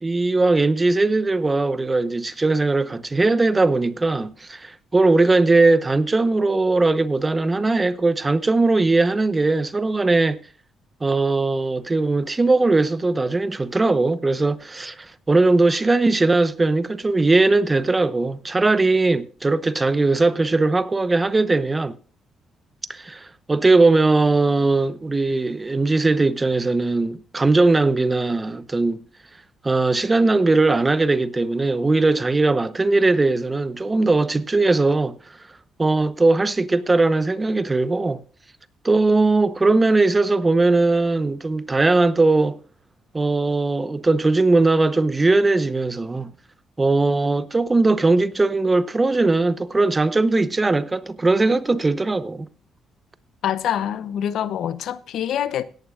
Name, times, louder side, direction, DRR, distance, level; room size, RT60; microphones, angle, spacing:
voice 1, 0.0-10.4 11.0-21.9 22.9-29.0 29.6-35.2 35.8-38.2 38.8-42.6 43.1-46.3 46.8-52.5, right 3 dB, 20° right, 0.8 m, -19 dB
voice 2, 53.4-55.6, left 10 dB, 75° left, 0.6 m, -25 dB
17.5 x 11.0 x 2.4 m
cardioid pair, 90°, 0 cm